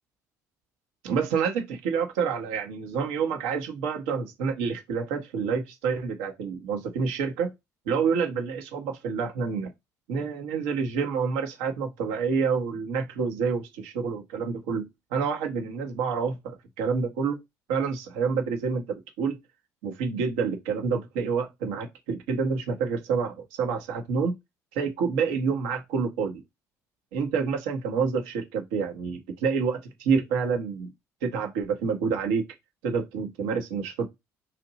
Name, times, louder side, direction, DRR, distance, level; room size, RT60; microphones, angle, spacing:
voice 1, 1.0-7.5 7.9-9.7 10.1-17.4 17.7-19.4 19.8-24.4 24.7-26.4 27.1-30.9 31.2-32.5 32.8-34.1, right 5 dB, 75° right, 0.8 m, -28 dB
2.8 x 2.6 x 3.8 m
hypercardioid pair, 55°, 9 cm